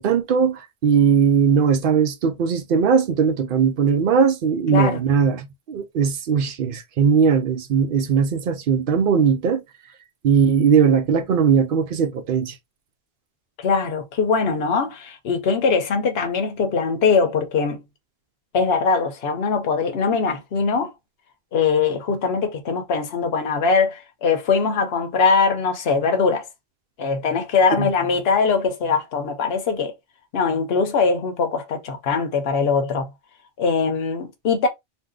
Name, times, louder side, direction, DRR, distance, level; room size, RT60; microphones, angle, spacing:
voice 1, 0.0-9.6 10.2-12.5 27.8-27.9, right 6 dB, 65° right, 0.7 m, -19 dB
voice 2, 13.6-17.8 18.5-20.9 21.5-26.5 27.0-29.9 30.3-33.1 33.6-34.7, left 5 dB, 70° left, 1.0 m, -21 dB
2.6 x 2.1 x 3.5 m
omnidirectional pair, 1.1 m